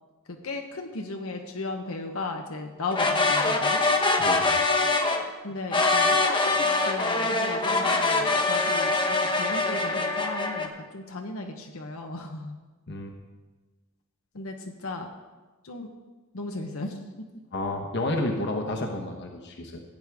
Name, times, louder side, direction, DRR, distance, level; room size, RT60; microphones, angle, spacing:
voice 1, 0.3-3.8 5.4-12.6 14.3-15.1 15.6-15.9 16.3-16.9, left 3 dB, 85° left, 3 dB, 1.0 m, -36 dB
sound 1, 2.9-5.2 5.7-10.7, left 3 dB, 25° left, 0.9 m, -24 dB
voice 2, 4.2-4.6 12.9-13.1 17.5-19.8, left 1 dB, 55° left, 2 dB, 1.0 m, -30 dB
16.0 x 9.2 x 3.5 m, 1.3 s
head